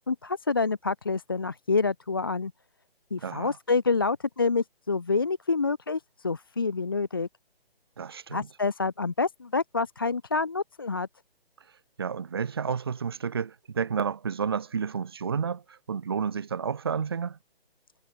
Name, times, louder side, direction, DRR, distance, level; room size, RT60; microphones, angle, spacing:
voice 1, 0.1-2.5 3.1-7.3 8.3-11.1, left 4 dB, 20° left, 0.6 m, -27 dB
voice 2, 3.2-3.6 8.0-8.5 12.0-17.4, right 6 dB, 25° right, 0.8 m, -31 dB
hypercardioid pair, 170°, 31 cm